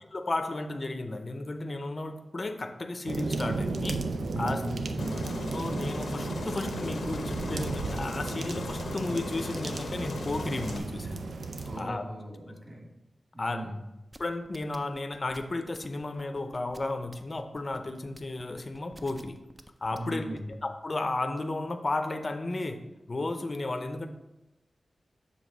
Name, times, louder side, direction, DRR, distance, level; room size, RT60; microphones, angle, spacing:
voice 1, 0.1-4.1 4.4-4.6 5.5-11.3 11.8-12.0 13.4-13.7 14.2-19.4 19.8-22.8 23.1-24.1, left 2 dB, 40° left, 7 dB, 0.7 m, -33 dB
sound 1, 3.1-11.8, right 3 dB, 80° right, 0.6 m, -34 dB
voice 2, 4.3-5.2 11.7-12.9 13.3-13.7 19.9-20.5, equal, 35° right, -1 dB, 2.3 m, -38 dB
Aircraft, 5.0-10.8, left 3 dB, 80° left, 0.8 m, -38 dB
sound 2, 14.1-20.6, right 1 dB, 15° right, 0.5 m, -50 dB
7.2 x 3.6 x 6.2 m, 0.97 s
wide cardioid pair, 80°, 0 cm